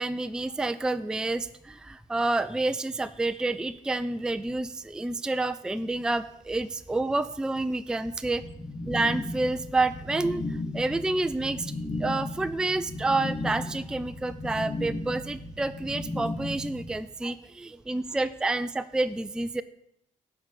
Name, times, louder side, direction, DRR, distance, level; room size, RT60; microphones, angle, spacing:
voice 1, 0.0-8.4 8.9-10.5 10.7-11.7 12.0-19.6, right 2 dB, 5° right, 12 dB, 0.3 m, -29 dB
sound 1, 8.4-16.9, left 2 dB, 40° left, 1.7 m, -35 dB
10.5 x 3.9 x 7.1 m, 0.73 s
cardioid pair, 95°, 14 cm